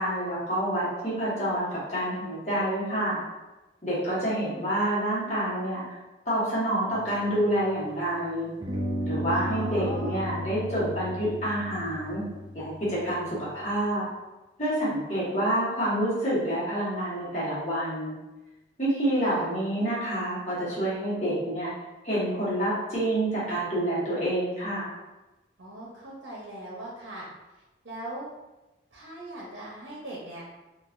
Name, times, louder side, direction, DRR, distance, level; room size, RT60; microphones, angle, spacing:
voice 1, 0.0-3.2 3.8-5.8 6.2-8.5 9.0-12.2 12.5-14.0 14.6-18.1 18.8-21.7 22.0-24.9, right 1 dB, 40° left, -9 dB, 1.3 m, -28 dB
sound 1, 6.9-8.1 8.6-13.8, equal, 25° right, 0.4 m, -35 dB
voice 2, 9.3-10.3 19.2-19.5 25.6-27.3 27.8-28.3 28.9-30.4, right 1 dB, 75° right, -4 dB, 0.7 m, -39 dB
3.8 x 2.4 x 2.5 m, 1.1 s
head